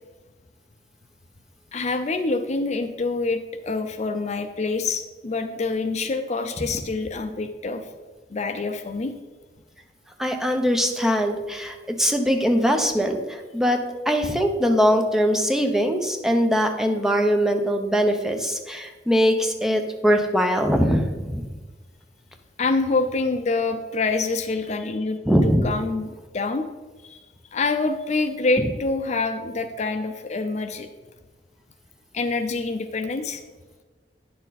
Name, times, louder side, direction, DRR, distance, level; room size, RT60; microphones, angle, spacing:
voice 1, 1.7-7.9 8.3-9.1 22.6-26.1 26.3-26.7 27.0-27.3 27.5-30.9 32.1-33.4, left 3 dB, 40° left, 8 dB, 0.5 m, -26 dB
voice 2, 10.2-13.8 14.1-21.4 25.2-25.7 28.6-28.7, equal, 5° right, 4 dB, 0.7 m, -22 dB
9.5 x 6.8 x 4.0 m, 1.3 s
head